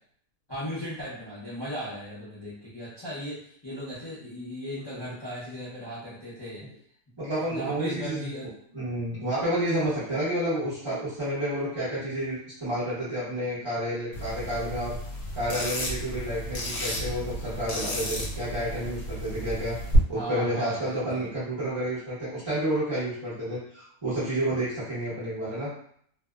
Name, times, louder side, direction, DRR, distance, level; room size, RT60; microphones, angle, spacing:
voice 1, 0.5-6.6 7.5-8.5 20.1-21.3, equal, 30° left, -10 dB, 0.5 m, -37 dB
voice 2, 7.2-8.3 8.7-15.0 15.3-19.8 20.1-25.7, right 1 dB, 25° right, -13 dB, 0.7 m, -30 dB
sound 1, 14.1-20.0, right 1 dB, 65° left, 1.1 m, -33 dB
2.7 x 2.1 x 2.3 m, 0.64 s
omnidirectional pair, 1.7 m